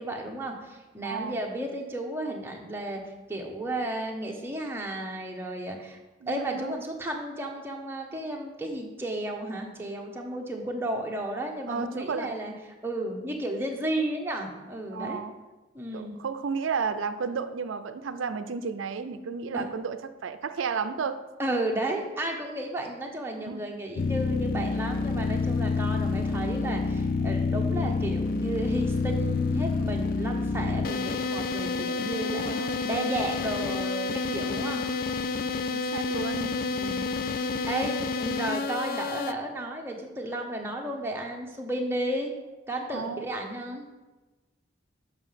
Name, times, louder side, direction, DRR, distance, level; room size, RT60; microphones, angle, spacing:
voice 1, 0.0-3.0 3.3-6.0 6.3-12.5 12.8-15.2 15.7-16.2 19.5-19.7 21.4-32.6 32.8-34.8 36.7-37.1 37.4-42.3 42.7-43.9, right 1 dB, 10° right, 1 dB, 0.9 m, -33 dB
voice 2, 1.0-1.4 6.2-6.8 11.7-12.3 14.9-15.3 15.9-20.0 20.2-21.2 23.5-23.6 32.2-32.8 35.7-36.6 42.9-43.3, right 5 dB, 85° right, 10 dB, 0.5 m, -32 dB
sound 1, 24.0-39.3, left 4 dB, 45° left, 0.3 m, -28 dB
6.9 x 5.6 x 5.7 m, 1.2 s
head